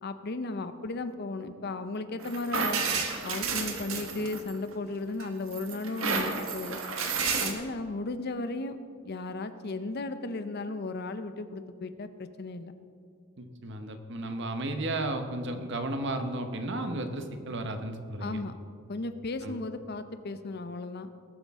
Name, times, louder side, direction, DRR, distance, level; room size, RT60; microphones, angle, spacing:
voice 1, 0.0-2.8 3.2-6.8 7.4-8.8 9.0-12.7 18.2-18.5 18.9-21.1, left 2 dB, 50° left, 10 dB, 0.6 m, -35 dB
sound 1, 2.2-4.7 5.2-7.5, right 5 dB, 75° right, 1.3 m, -31 dB
voice 2, 13.4-18.4 19.4-19.6, right 1 dB, 60° right, 7 dB, 1.0 m, -34 dB
20.0 x 8.3 x 3.6 m, 2.2 s
head